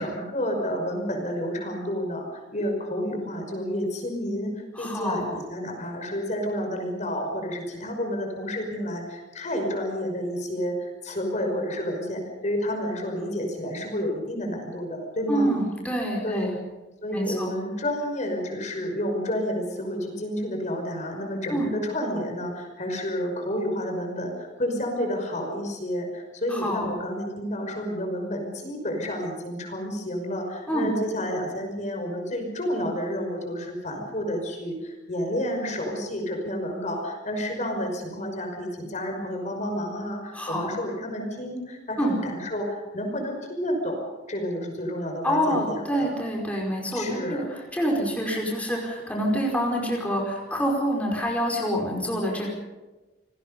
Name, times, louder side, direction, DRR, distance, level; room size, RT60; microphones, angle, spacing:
voice 1, 0.0-2.3 2.5-4.5 4.8-15.5 16.2-16.5 17.0-44.0 44.3-46.1 46.9-47.4, equal, 40° left, 3 dB, 5.7 m, -30 dB
voice 2, 4.8-5.2 15.3-16.5 17.1-17.5 21.5-21.7 26.5-26.9 30.7-30.9 40.3-40.7 42.0-42.2 45.2-52.5, equal, 10° left, -2 dB, 5.1 m, -26 dB
28.0 x 20.5 x 5.5 m, 1.2 s
head